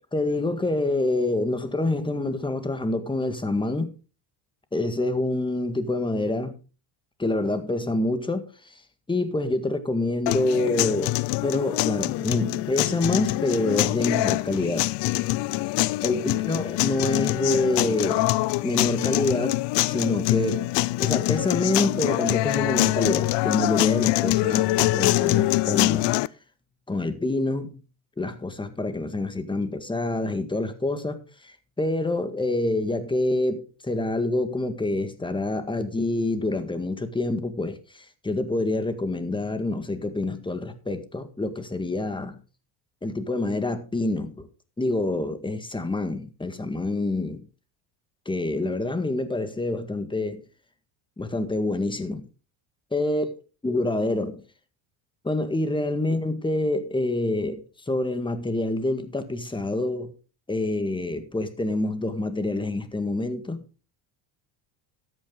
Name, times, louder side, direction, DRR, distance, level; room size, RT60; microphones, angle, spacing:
voice 1, 0.1-3.9 4.7-6.6 7.2-8.7 9.1-11.2 11.4-14.9 16.0-18.3 18.6-20.7 21.0-26.1 26.9-27.8 28.2-42.4 43.0-44.5 44.8-47.5 48.3-50.4 51.2-52.3 52.9-53.3 53.6-54.4 55.2-60.1 60.5-63.6, left 2 dB, 10° left, 1.8 m, -27 dB
sound 1, 10.3-26.3, left 19 dB, 60° left, 0.6 m, -24 dB
13.0 x 9.2 x 3.8 m
supercardioid pair, 110°, 48 cm